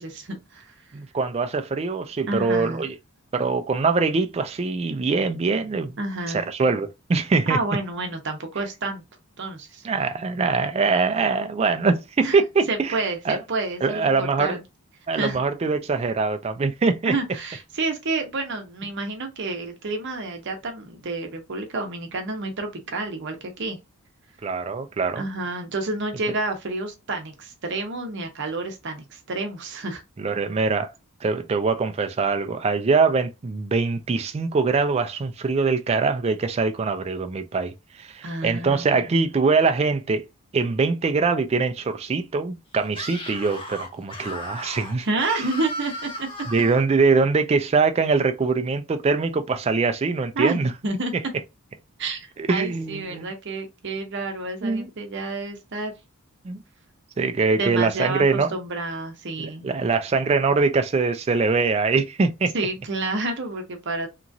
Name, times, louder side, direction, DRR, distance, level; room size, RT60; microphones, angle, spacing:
voice 1, 0.0-0.7 2.3-2.8 6.0-6.4 7.5-9.0 9.4-9.8 12.2-12.4 12.7-14.6 15.1-15.4 17.0-23.8 25.1-30.0 38.2-39.1 45.0-46.3 50.4-51.1 52.0-55.9 57.6-58.2 58.5-59.7 62.5-64.1, right 2 dB, 50° right, 0.7 m, -29 dB
voice 2, 0.9-3.0 3.3-5.9 6.3-7.6 9.8-13.0 13.3-13.4 13.8-14.6 15.1-17.1 24.4-25.2 26.3-26.4 30.2-30.9 31.2-40.2 40.5-45.1 46.5-50.7 52.4-53.3 54.6-54.9 56.4-56.6 57.2-58.5 59.4-62.5, right 4 dB, 30° right, 0.3 m, -23 dB
Screaming, 42.9-46.8, left 1 dB, 25° left, 0.7 m, -36 dB
2.9 x 2.4 x 2.6 m
head